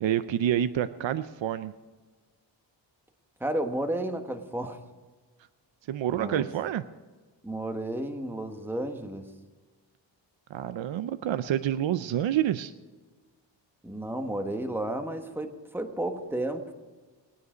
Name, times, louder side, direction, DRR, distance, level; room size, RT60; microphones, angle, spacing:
voice 1, 0.0-1.7 5.9-6.8 10.5-12.7, right 11 dB, 80° right, 12 dB, 0.7 m, -28 dB
voice 2, 3.4-4.8 6.1-6.5 7.4-9.3 13.8-16.7, right 1 dB, 5° right, 6 dB, 1.3 m, -32 dB
21.0 x 9.6 x 5.1 m, 1.4 s
wide cardioid pair, 105°, 46 cm